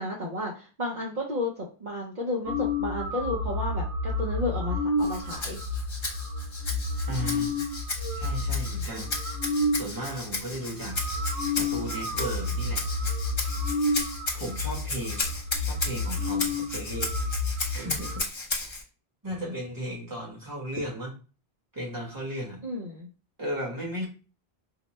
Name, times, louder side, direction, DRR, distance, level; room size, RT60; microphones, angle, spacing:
voice 1, 0.0-5.6 22.6-23.1, left 1 dB, 50° right, -3 dB, 0.8 m, -32 dB
sound 1, 2.5-9.9 10.5-10.6 10.8-18.2, left 2 dB, 85° right, 1.1 m, -30 dB
Rattle (instrument), 5.0-18.8, left 2 dB, 30° left, 0.6 m, -35 dB
voice 2, 7.1-7.6 8.1-9.1 9.7-11.0 11.6-12.8 14.3-17.1 17.7-18.3 18.6-18.8 19.2-21.1 21.7-22.6 23.4-24.1, equal, 20° right, -2 dB, 1.2 m, -35 dB
4.7 x 2.1 x 3.0 m, 0.35 s
omnidirectional pair, 1.0 m